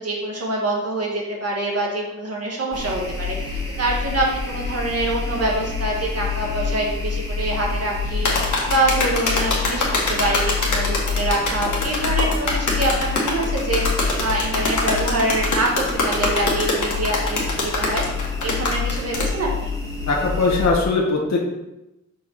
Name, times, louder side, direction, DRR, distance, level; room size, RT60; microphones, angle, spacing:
voice 1, 0.0-18.0 18.4-19.7, right 1 dB, 55° right, -2 dB, 1.5 m, -25 dB
sound 1, 2.7-20.7, left 4 dB, 10° left, 1.8 m, -27 dB
sound 2, 8.3-19.3, left 3 dB, 90° left, 1.8 m, -23 dB
voice 2, 20.1-21.4, left 3 dB, 65° left, -3 dB, 1.7 m, -20 dB
6.8 x 4.7 x 4.5 m, 0.92 s
wide cardioid pair, 100°, 29 cm